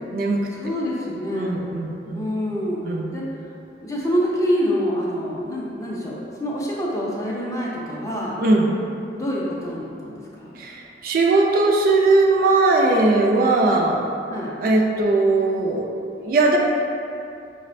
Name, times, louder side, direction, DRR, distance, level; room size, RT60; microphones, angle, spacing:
voice 1, 0.5-1.6 2.1-2.8 3.1-3.2 3.8-8.4 9.2-10.5 14.3-14.5, equal, 20° left, -5 dB, 0.4 m, -26 dB
voice 2, 1.3-2.2 2.8-3.1 8.4-8.7 10.6-14.1 14.6-16.6, right 2 dB, 55° right, 0 dB, 0.3 m, -19 dB
4.9 x 2.1 x 2.5 m, 2.6 s
head